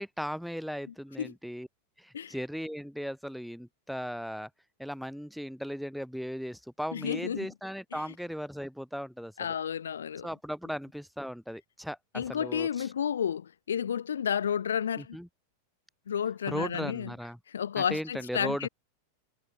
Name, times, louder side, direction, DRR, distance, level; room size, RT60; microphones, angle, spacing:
voice 1, 0.0-1.7 2.0-4.5 4.8-9.6 10.2-12.9 15.0-15.3 16.5-17.4 17.8-18.7, equal, ahead, 1.2 m, -37 dB
voice 2, 6.9-7.5 9.4-10.3 12.1-15.2 16.1-17.1 17.5-18.7, left 8 dB, 65° left, 0.6 m, -31 dB
figure-of-eight pair, 90°, 0 cm